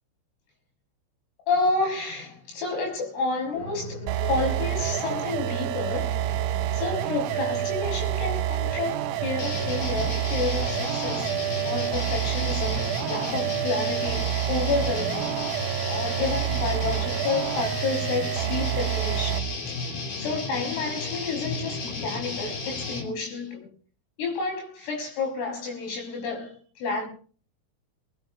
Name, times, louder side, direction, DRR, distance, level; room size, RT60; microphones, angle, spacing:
voice 1, 1.5-6.5 6.7-11.4 11.7-15.5 15.9-19.8 20.2-23.7 24.2-27.1, left 4 dB, 80° left, 8.8 m, -30 dB
sound 1, 3.5-15.6, equal, 15° left, 4.2 m, -40 dB
sound 2, 4.1-19.6, right 14 dB, 85° right, 3.5 m, -28 dB
sound 3, 9.4-23.1, left 4 dB, 50° left, 4.8 m, -33 dB
21.5 x 20.5 x 3.0 m
omnidirectional pair, 5.8 m